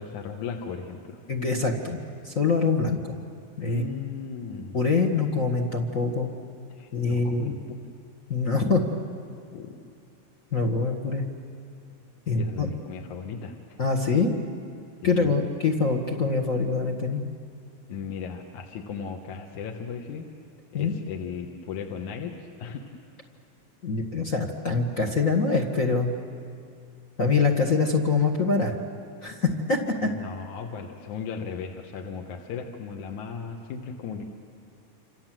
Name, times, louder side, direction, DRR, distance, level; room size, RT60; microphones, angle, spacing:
voice 1, 0.0-1.2 3.6-4.8 6.8-7.6 9.5-9.7 12.3-13.5 15.0-15.4 17.9-20.3 20.7-22.9 27.5-27.6 30.0-34.2, left 6 dB, 65° left, 2 dB, 2.5 m, -36 dB
voice 2, 1.3-3.2 3.6-3.8 4.7-6.3 6.9-7.6 8.3-8.8 10.5-11.2 12.3-12.7 13.8-14.3 15.0-17.2 20.7-20.9 23.8-26.1 27.2-28.7 29.2-30.1, left 4 dB, 45° left, 2 dB, 1.1 m, -24 dB
28.5 x 27.0 x 7.6 m, 2.5 s
omnidirectional pair, 4.0 m